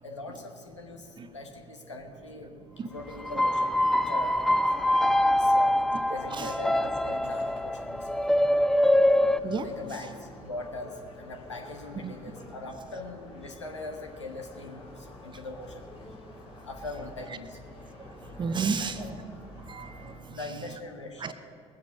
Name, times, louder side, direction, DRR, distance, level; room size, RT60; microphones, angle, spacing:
voice 1, 0.0-2.6 2.9-4.4 5.3-5.8 6.1-8.1 9.6-15.8 16.6-17.7 18.8-18.9 20.3-21.3, left 2 dB, 85° left, 2 dB, 1.2 m, -41 dB
sound 1, 2.9-20.2, left 1 dB, 35° left, 3.3 m, -48 dB
sound 2, 3.2-9.4, left 1 dB, 5° left, 0.4 m, -24 dB
voice 2, 18.4-19.1 19.7-20.6 21.2-21.3, right 5 dB, 30° right, 10 dB, 0.9 m, -32 dB
20.0 x 7.8 x 5.4 m, 2.3 s
figure-of-eight pair, 50°, 15 cm